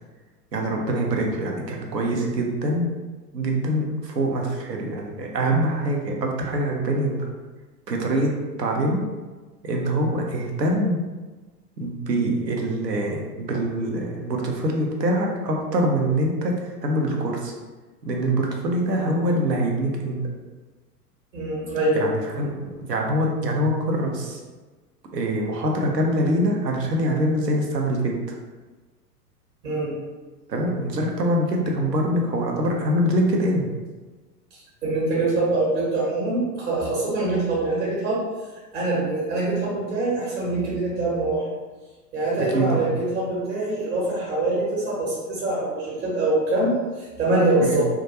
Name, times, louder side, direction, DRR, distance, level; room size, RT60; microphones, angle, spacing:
voice 1, 0.5-2.9 3.3-7.3 7.9-9.1 9.6-11.0 11.8-17.5 18.0-20.2 21.9-24.4 25.1-28.2 30.5-33.7 42.5-42.9 47.6-47.8, right 1 dB, 80° right, 1 dB, 0.6 m, -24 dB
voice 2, 21.3-22.0 29.6-29.9 34.5-38.2 38.7-41.4 42.1-47.8, right 2 dB, 40° right, -6 dB, 0.9 m, -24 dB
2.3 x 2.2 x 2.8 m, 1.3 s
figure-of-eight pair, 95°, 49 cm